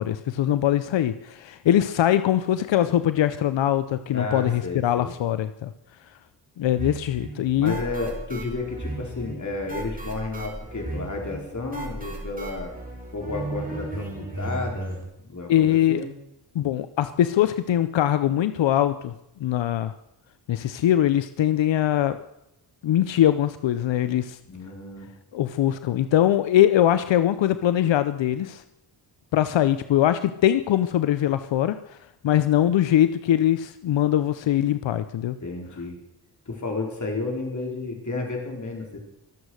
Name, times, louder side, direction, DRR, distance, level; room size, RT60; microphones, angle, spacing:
voice 1, 0.0-5.7 6.6-7.8 15.5-16.0 16.5-19.1 19.4-19.9 20.5-22.3 22.8-24.4 25.3-28.6 29.3-32.0 32.2-35.3, left 11 dB, 90° left, 12 dB, 0.7 m, -22 dB
voice 2, 4.1-5.2 7.6-12.7 13.1-15.0 15.3-16.1 24.4-25.1 35.4-36.0 36.5-39.0, left 3 dB, 40° left, 1 dB, 4.7 m, -32 dB
sound 1, 6.8-15.0, right 2 dB, 20° right, 4.4 m, -35 dB
24.0 x 8.3 x 6.4 m, 0.83 s
cardioid pair, 80°, 43 cm